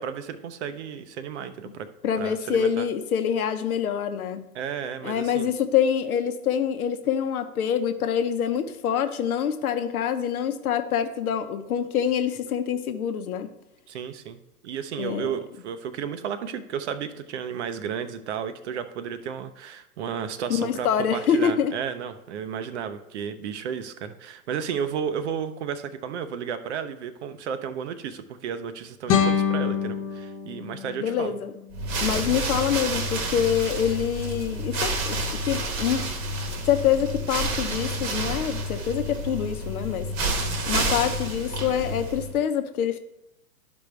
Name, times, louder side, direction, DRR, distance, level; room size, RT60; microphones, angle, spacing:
voice 1, 0.0-1.9 2.2-2.9 4.5-5.5 13.9-31.4, right 7 dB, 45° right, 10 dB, 0.7 m, -33 dB
voice 2, 2.0-4.4 5.0-13.5 15.0-15.4 20.5-21.7 31.0-31.5 32.0-36.1 36.6-40.1 40.7-43.0, left 8 dB, 65° left, 9 dB, 0.9 m, -25 dB
sound 1, 29.1-32.1, left 8 dB, 25° left, 0.7 m, -26 dB
sound 2, 31.7-42.4, right 1 dB, 30° right, 1.1 m, -29 dB
11.5 x 5.2 x 3.3 m, 0.87 s
hypercardioid pair, 130°, 47 cm